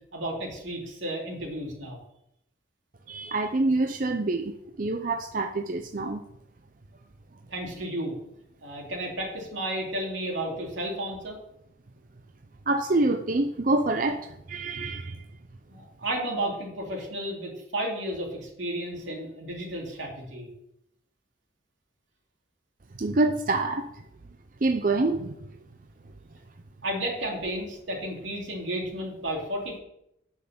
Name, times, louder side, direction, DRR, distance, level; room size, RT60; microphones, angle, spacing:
voice 1, 0.1-2.0 7.5-8.1 8.6-11.4 15.7-20.5 26.8-29.8, right 1 dB, 85° right, -1 dB, 3.3 m, -32 dB
voice 2, 3.1-4.5 4.8-6.2 12.7-15.2 23.0-23.9 24.6-25.4, right 2 dB, 45° right, 6 dB, 0.6 m, -26 dB
8.6 x 6.3 x 7.2 m, 0.79 s
head